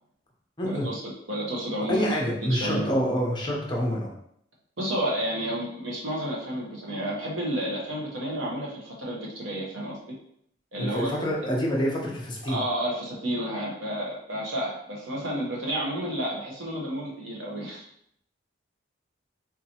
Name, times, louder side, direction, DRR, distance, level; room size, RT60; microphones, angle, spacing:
voice 1, 0.6-2.9 4.8-10.0 10.7-11.1 12.5-17.8, right 1 dB, 80° right, -4 dB, 1.2 m, -31 dB
voice 2, 1.9-4.1 10.8-12.6, equal, 25° left, -3 dB, 0.7 m, -27 dB
3.9 x 2.9 x 2.9 m, 0.70 s
head